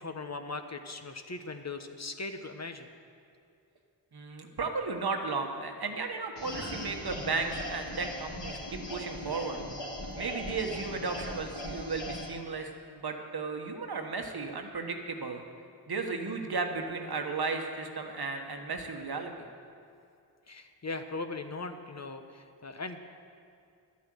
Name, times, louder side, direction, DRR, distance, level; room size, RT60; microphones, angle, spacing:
voice 1, 0.0-2.9 20.5-23.0, left 3 dB, 40° left, 7 dB, 1.0 m, -39 dB
voice 2, 4.1-9.6 10.1-15.4 15.9-19.3, right 4 dB, 60° right, 4 dB, 1.4 m, -34 dB
sound 1, 6.4-12.3, left 1 dB, 80° left, 2.6 m, -39 dB
11.0 x 8.5 x 7.8 m, 2.5 s
cardioid pair, 45°, 43 cm